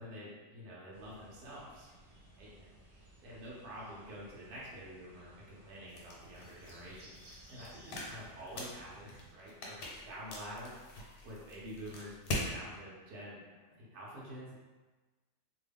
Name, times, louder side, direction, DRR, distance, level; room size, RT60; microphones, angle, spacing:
voice 1, 0.0-1.9 2.4-2.7 3.2-12.2 12.5-14.5, equal, 70° right, -7 dB, 1.3 m, -48 dB
sound 1, 0.9-9.3, right 1 dB, 55° right, 0.4 m, -58 dB
sound 2, 5.9-12.5, left 1 dB, 85° left, 1.3 m, -43 dB
3.0 x 2.3 x 3.4 m, 1.3 s
omnidirectional pair, 1.7 m